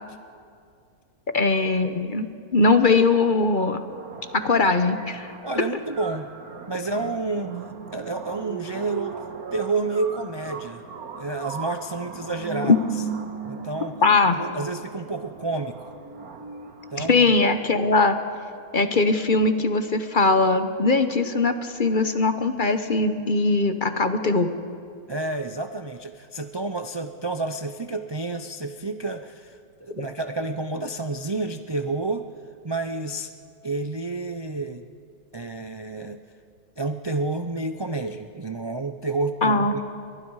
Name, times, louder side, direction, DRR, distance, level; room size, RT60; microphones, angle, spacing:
voice 1, 1.3-3.8 4.3-5.3 12.6-12.8 14.0-14.4 17.0-18.2 18.7-24.5 30.0-30.1 39.4-39.7, left 3 dB, 40° left, 9 dB, 0.9 m, -20 dB
sound 1, 3.9-17.9, right 5 dB, 70° right, 1.9 m, -38 dB
voice 2, 5.4-6.3 6.7-7.5 7.9-9.2 9.5-10.8 11.1-12.8 13.4-14.0 14.3-15.9 16.9-17.2 25.1-32.3 32.6-33.3 33.6-34.8 35.3-36.2 36.8-39.8, right 3 dB, 40° right, 7 dB, 0.3 m, -29 dB
29.5 x 23.5 x 4.8 m, 2.4 s
omnidirectional pair, 1.6 m